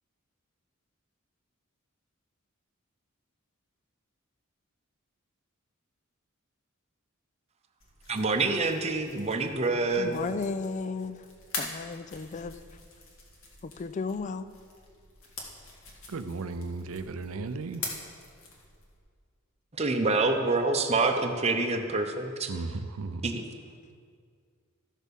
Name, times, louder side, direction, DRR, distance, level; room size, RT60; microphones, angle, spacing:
sound 1, 7.8-19.0, left 3 dB, 80° left, 1.9 m, -44 dB
voice 1, 8.1-10.2 19.8-22.5 23.2-23.4, right 3 dB, 30° right, 5 dB, 0.8 m, -27 dB
voice 2, 10.0-11.2 11.6-12.6 13.6-14.5, left 4 dB, 35° left, 12 dB, 0.4 m, -34 dB
voice 3, 16.1-17.8 22.5-23.2, right 3 dB, 80° right, 11 dB, 0.5 m, -35 dB
14.0 x 6.4 x 5.3 m, 2.1 s
head